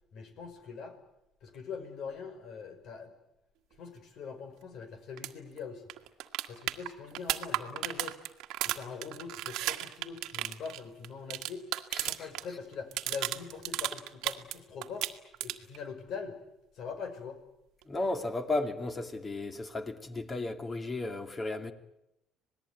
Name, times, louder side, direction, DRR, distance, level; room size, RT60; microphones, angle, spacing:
voice 1, 0.1-1.0 1.4-3.1 3.8-5.8 6.5-8.2 8.6-11.7 12.0-15.1 15.4-16.4 16.7-17.4, left 5 dB, 65° left, 5.4 m, -42 dB
sound 1, 5.2-5.3 5.6-5.7 5.9-12.4 12.7-14.6 14.8-15.8 17.8-17.9, right 15 dB, 80° right, 1.6 m, -34 dB
voice 2, 11.9-12.3 17.9-21.7, left 2 dB, 25° left, 2.6 m, -34 dB
26.5 x 19.5 x 9.5 m
cardioid pair, 115°, 0 cm